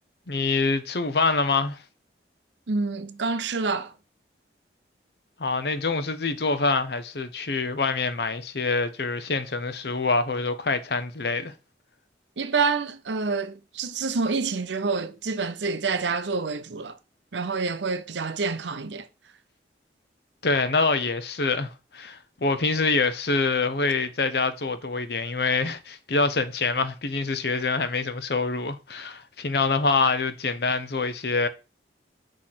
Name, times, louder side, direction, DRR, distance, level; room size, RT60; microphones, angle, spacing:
voice 1, 0.3-1.8 5.4-11.5 20.4-31.5, left 3 dB, 65° left, 0.8 m, -25 dB
voice 2, 2.7-3.9 12.4-17.0 17.3-19.1, right 4 dB, 85° right, 0.7 m, -27 dB
6.3 x 3.2 x 5.8 m
head